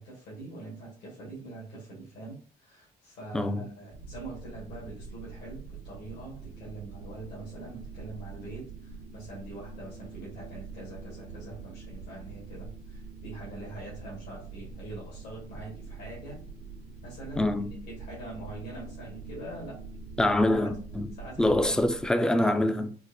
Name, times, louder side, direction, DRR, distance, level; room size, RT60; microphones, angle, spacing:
voice 1, 0.0-16.4 17.0-19.8 21.1-21.9, right 2 dB, 80° left, 1.7 m, -44 dB
voice 2, 3.3-3.7 17.4-17.8 20.2-21.1 21.4-23.0, left 1 dB, 5° left, 0.3 m, -25 dB
sound 1, 3.9-22.1, right 4 dB, 80° right, 1.1 m, -44 dB
4.2 x 2.4 x 2.6 m
cardioid pair, 110°, 17 cm